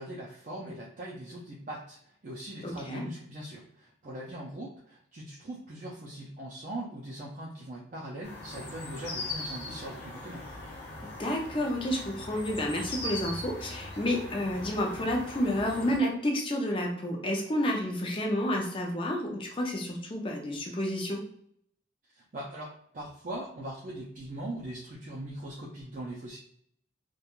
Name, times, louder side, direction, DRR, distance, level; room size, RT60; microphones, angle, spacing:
voice 1, 0.0-10.4 22.1-26.4, right 1 dB, 45° right, -5 dB, 0.4 m, -41 dB
voice 2, 2.6-3.1 11.2-21.2, left 1 dB, 25° left, 1 dB, 0.5 m, -30 dB
sound 1, 8.2-16.0, left 2 dB, 55° left, 0.9 m, -40 dB
2.4 x 2.2 x 2.9 m, 0.66 s
head